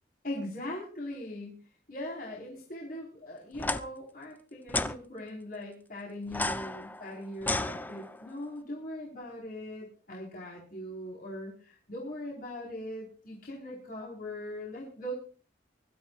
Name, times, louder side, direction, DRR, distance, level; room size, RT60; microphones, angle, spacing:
voice 1, 0.2-1.6 1.9-15.1, left 1 dB, 50° left, -2 dB, 4.6 m, -40 dB
sound 1, 3.5-3.8 4.7-4.9 6.3-8.3, left 2 dB, 10° left, 0.7 m, -32 dB
24.5 x 13.0 x 2.5 m, 0.38 s
head